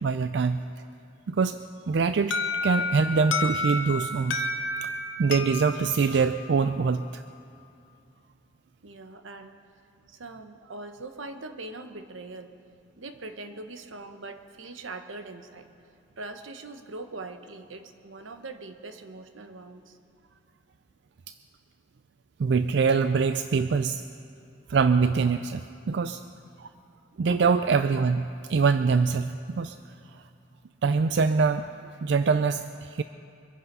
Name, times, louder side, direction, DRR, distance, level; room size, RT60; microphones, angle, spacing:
voice 1, 0.0-0.6 1.3-1.6 1.9-4.4 4.8-4.9 5.2-7.2 22.4-24.0 24.7-26.2 26.6-26.7 27.2-29.8 30.1-30.2 30.8-31.7 32.0-33.0, right 5 dB, 60° right, 10 dB, 0.4 m, -24 dB
Alarm, 2.3-7.1, left 2 dB, 75° left, 0.9 m, -31 dB
voice 2, 8.8-9.6 10.1-12.6 13.0-15.7 16.2-20.0, right 2 dB, 85° right, 7 dB, 1.1 m, -41 dB
24.5 x 9.8 x 5.4 m, 2.7 s
head